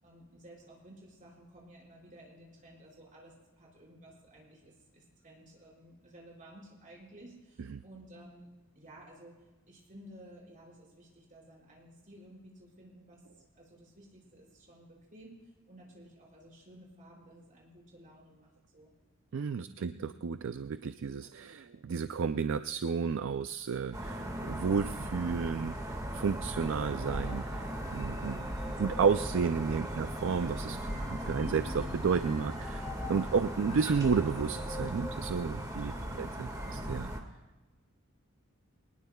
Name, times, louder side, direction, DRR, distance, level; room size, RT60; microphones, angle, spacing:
voice 1, 0.0-9.4 9.7-13.2 13.5-18.9 19.6-20.1 35.9-36.3, right 1 dB, 40° right, -3 dB, 5.1 m, -54 dB
voice 2, 19.3-28.4 28.8-30.8 31.1-35.9 36.2-37.1, right 5 dB, 60° right, 11 dB, 0.4 m, -32 dB
sound 1, 23.9-37.2, right 1 dB, 15° right, 1.7 m, -38 dB
sound 2, 27.1-36.7, left 3 dB, 25° left, 1.4 m, -48 dB
22.0 x 20.0 x 2.3 m, 1.2 s
head